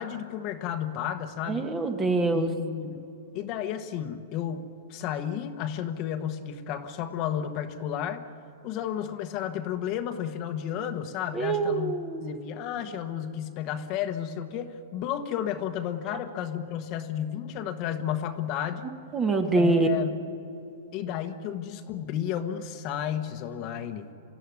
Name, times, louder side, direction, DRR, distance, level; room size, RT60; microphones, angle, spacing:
voice 1, 0.0-1.7 2.3-3.1 3.3-8.3 8.6-18.9 19.5-20.2 20.9-24.1, left 9 dB, 35° left, 7 dB, 1.3 m, -32 dB
voice 2, 1.5-2.5 11.3-12.4 19.1-19.9, right 3 dB, 20° right, 6 dB, 1.7 m, -25 dB
26.5 x 14.0 x 9.7 m, 2.8 s
hypercardioid pair, 145°, 0 cm